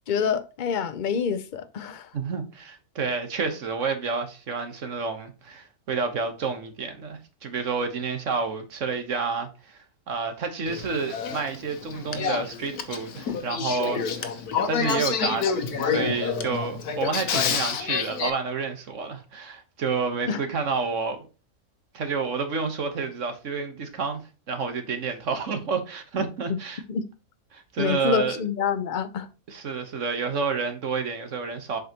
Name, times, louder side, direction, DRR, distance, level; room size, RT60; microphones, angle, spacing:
voice 1, 0.1-2.1 20.3-20.4 26.5-26.6 26.9-27.0 27.8-29.3, left 7 dB, 50° left, 0.6 m, -27 dB
voice 2, 2.1-14.4 14.7-21.3 21.9-24.2 24.5-26.8 27.5-28.4 29.5-31.8, right 5 dB, 60° right, 1.4 m, -29 dB
Male speech man speaking / Female speech woman speaking / Conversation, 10.7-18.3, left 6 dB, 85° left, 1.4 m, -28 dB
7.7 x 5.4 x 2.9 m
omnidirectional pair, 1.6 m